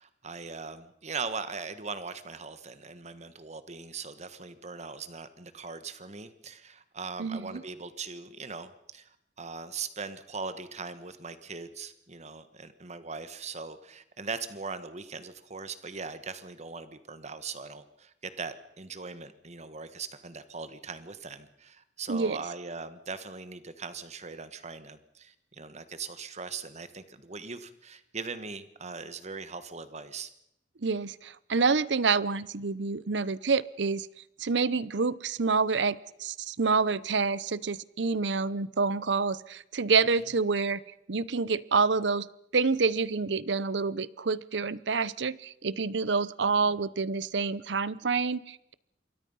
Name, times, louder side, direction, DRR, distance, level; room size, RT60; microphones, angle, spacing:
voice 1, 0.0-30.3 46.4-46.7, right 4 dB, 40° right, 12 dB, 1.4 m, -40 dB
voice 2, 7.2-7.6 22.1-22.4 30.8-34.1 34.4-40.8 41.1-42.3 42.5-48.7, right 4 dB, 75° right, 19 dB, 0.8 m, -27 dB
27.0 x 23.0 x 5.6 m, 0.79 s
head